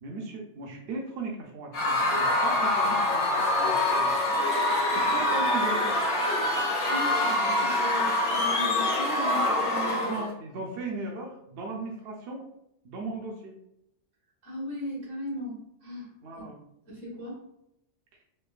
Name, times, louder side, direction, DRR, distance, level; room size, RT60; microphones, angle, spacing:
voice 1, 0.0-4.1 4.9-6.0 10.0-12.5 12.8-13.5 16.2-16.6, right 2 dB, 60° right, 1 dB, 0.8 m, -37 dB
Screaming / Cheering / Crowd, 1.7-10.3, left 1 dB, 70° left, 1.1 m, -25 dB
voice 2, 6.9-10.3 14.4-16.1 16.9-17.4, left 1 dB, 85° right, -6 dB, 2.0 m, -37 dB
4.4 x 2.4 x 2.4 m, 0.79 s
omnidirectional pair, 1.3 m